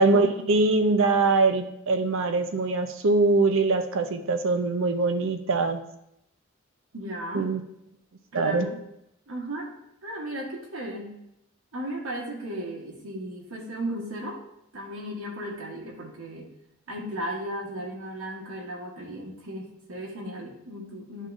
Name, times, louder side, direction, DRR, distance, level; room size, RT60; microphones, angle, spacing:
voice 1, 0.0-5.8 7.3-7.6 8.3-8.7, right 3 dB, 65° right, 9 dB, 0.6 m, -23 dB
voice 2, 6.9-7.5 8.3-8.8 9.3-9.7 10.0-11.1 11.7-14.4 14.7-16.5 16.9-21.3, right 1 dB, 85° right, -2 dB, 1.3 m, -35 dB
11.0 x 3.7 x 2.6 m, 0.81 s
head